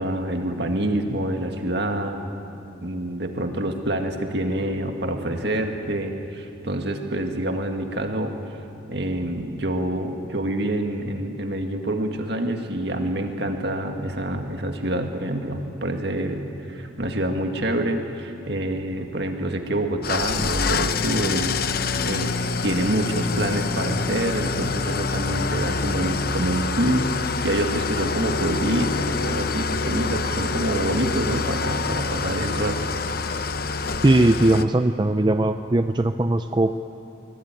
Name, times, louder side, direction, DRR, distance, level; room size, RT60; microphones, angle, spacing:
voice 1, 0.0-2.2 2.8-8.3 8.9-21.6 22.1-22.3 22.6-32.8, right 1 dB, 55° right, 4 dB, 2.0 m, -26 dB
Engine starting / Idling, 20.0-34.6, left 4 dB, 50° left, 0.8 m, -26 dB
voice 2, 34.0-36.7, right 2 dB, 20° right, 8 dB, 0.5 m, -19 dB
24.0 x 20.5 x 9.2 m, 2.7 s
head